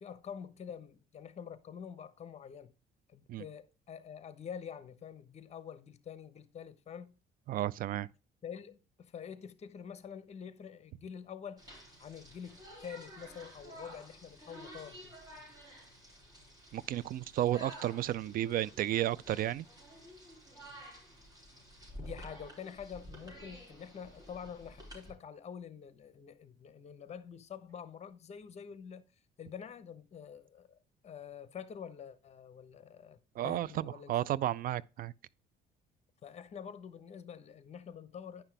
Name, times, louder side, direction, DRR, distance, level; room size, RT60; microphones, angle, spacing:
voice 1, 0.0-2.7 3.1-7.1 8.4-11.7 12.0-15.2 22.0-29.0 29.4-30.8 31.0-33.2 33.4-34.2 36.2-38.4, left 7 dB, 40° left, 1.0 m, -47 dB
voice 2, 7.5-8.1 16.7-19.7 33.4-35.1, right 13 dB, 60° right, 0.4 m, -33 dB
sound 1, 11.6-25.1, equal, 20° right, 4.6 m, -51 dB
10.0 x 5.8 x 3.4 m
cardioid pair, 110°, 17 cm